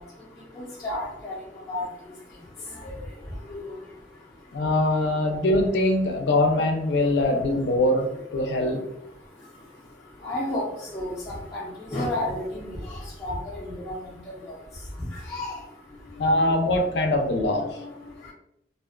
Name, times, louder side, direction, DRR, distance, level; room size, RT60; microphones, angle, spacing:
voice 1, 0.6-1.4 1.7-1.9 2.9-3.0 3.5-3.6 10.2-10.6 10.9-12.7 13.2-14.0 15.3-15.6, left 1 dB, 15° left, -8 dB, 0.5 m, -31 dB
voice 2, 4.5-8.8 16.0-18.2, left 1 dB, 70° left, 3 dB, 0.5 m, -23 dB
2.4 x 2.2 x 2.4 m, 0.78 s
head